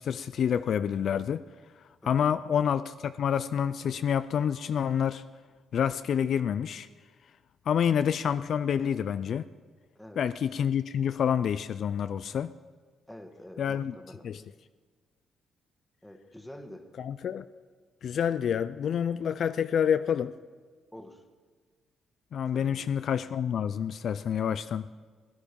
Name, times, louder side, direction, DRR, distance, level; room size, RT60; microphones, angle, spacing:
voice 1, 0.0-1.4 2.0-5.2 5.7-6.9 7.7-9.5 10.2-12.5 13.6-13.9 14.2-14.4 17.0-17.4 18.0-20.3 22.3-24.8, left 8 dB, 60° left, 13 dB, 0.3 m, -28 dB
voice 2, 13.1-14.2 16.0-16.9 20.9-21.2 22.5-22.9, left 1 dB, 5° left, 6 dB, 1.5 m, -47 dB
16.5 x 11.0 x 5.3 m, 1.5 s
cardioid pair, 90°, 0 cm